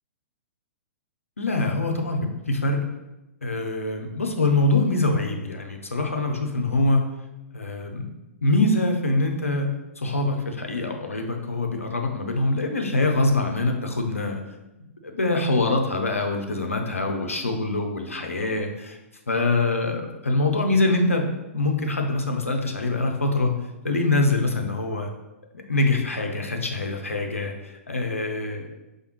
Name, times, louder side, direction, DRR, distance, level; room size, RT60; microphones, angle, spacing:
voice 1, 1.4-2.9 3.4-7.0 7.5-8.1 8.4-14.4 15.0-19.0 19.3-23.5 23.8-25.1 25.7-28.7, left 2 dB, 80° left, 3 dB, 0.6 m, -24 dB
4.8 x 2.3 x 3.0 m, 0.98 s
figure-of-eight pair, 110°, 7 cm